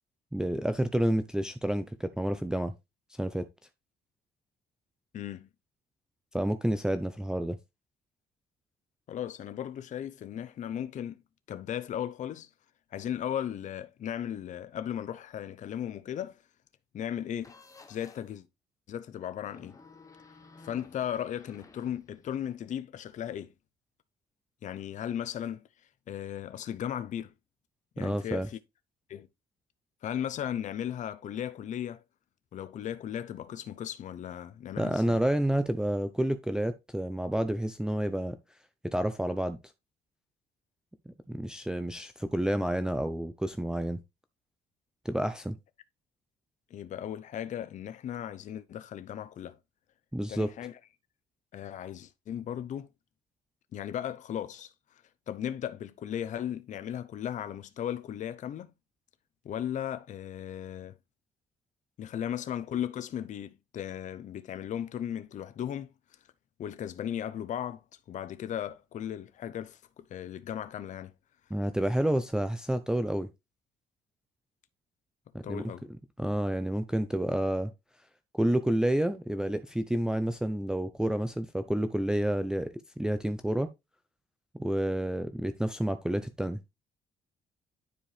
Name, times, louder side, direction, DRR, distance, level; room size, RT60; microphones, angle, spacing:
voice 1, 0.3-2.7 3.2-3.5 6.3-7.6 28.0-28.5 34.8-38.4 38.8-39.6 41.1-44.0 45.0-45.6 50.1-50.5 71.5-73.3 75.5-75.6 76.2-77.7 78.3-82.7 83.0-83.7 84.6-86.6, right 1 dB, 5° right, 0.5 m, -29 dB
voice 2, 5.1-5.5 9.1-11.2 11.5-12.5 12.9-16.4 16.9-17.5 17.9-18.5 18.9-19.7 20.6-23.5 24.6-25.7 26.1-27.3 28.0-28.6 29.1-29.3 30.0-32.0 32.5-35.2 46.7-49.6 50.3-50.8 51.5-52.9 53.7-58.7 59.4-60.9 62.0-65.9 66.6-71.1 75.4-75.8, left 10 dB, 45° left, 0.6 m, -36 dB
sound 1, 17.4-18.3 19.4-22.5, left 4 dB, 20° left, 1.1 m, -54 dB
10.0 x 4.6 x 3.3 m
cardioid pair, 140°, 17 cm